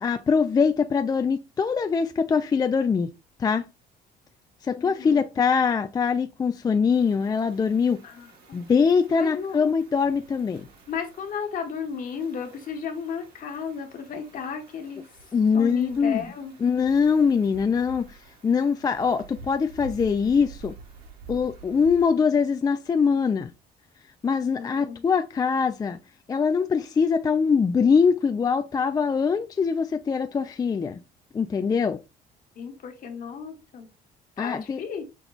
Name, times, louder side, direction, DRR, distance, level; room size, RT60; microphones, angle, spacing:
voice 1, 0.0-3.1 3.4-3.7 4.6-8.0 8.5-10.7 15.3-16.2 16.6-18.2 18.4-20.7 21.3-23.5 24.2-26.0 26.3-31.0 31.3-32.0 34.4-34.8, left 5 dB, 20° left, 0.3 m, -23 dB
voice 2, 4.7-5.3 8.0-8.6 9.1-9.6 10.9-15.0 15.5-16.5 24.5-25.0 32.5-33.9 34.4-35.0, left 6 dB, 55° left, 1.3 m, -34 dB
sound 1, 6.9-22.0, right 5 dB, 60° right, 1.7 m, -49 dB
6.0 x 2.2 x 3.9 m
cardioid pair, 110°, 17 cm